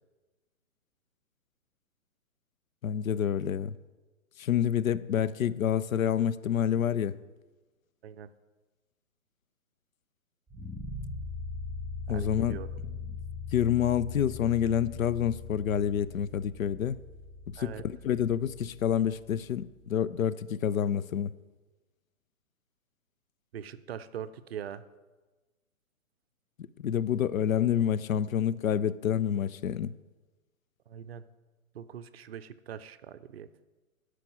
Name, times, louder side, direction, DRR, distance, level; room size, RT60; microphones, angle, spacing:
voice 1, 2.8-3.7 4.4-7.2 12.1-12.6 13.5-17.0 17.5-21.3 26.8-29.9, left 9 dB, 75° left, 0.5 m, -28 dB
sound 1, 10.5-19.5, left 4 dB, 5° right, 3.4 m, -41 dB
voice 2, 12.1-12.7 17.6-17.8 23.5-24.8 30.9-31.2 31.7-33.5, right 9 dB, 50° right, 0.5 m, -42 dB
9.6 x 4.9 x 6.0 m
hypercardioid pair, 135°, 41 cm